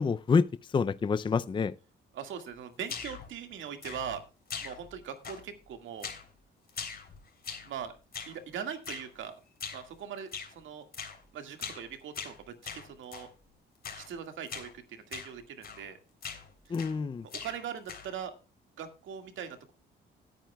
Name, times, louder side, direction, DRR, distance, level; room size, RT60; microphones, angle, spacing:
voice 1, 0.0-1.7 16.7-17.3, left 5 dB, 25° left, 0.5 m, -27 dB
voice 2, 2.1-4.2 4.6-6.1 7.6-7.9 8.3-9.4 9.7-10.9 11.3-13.3 13.9-16.0 16.7-16.8 17.2-18.3 18.8-19.7, right 8 dB, 75° right, 2.0 m, -41 dB
sound 1, 2.9-3.3 3.8-4.2 4.5-5.0 5.2-5.6 6.0-6.3 6.7-7.8 8.1-8.4 8.8-9.1 9.6-9.9 10.3-10.5 10.9-11.2 11.6-11.9 12.1-13.3 13.8-14.1 14.5-14.7 15.1-15.3 15.6-15.9 16.2-17.0 17.3-18.2, left 6 dB, 50° left, 3.5 m, -41 dB
18.0 x 9.2 x 2.3 m
cardioid pair, 90°, 20 cm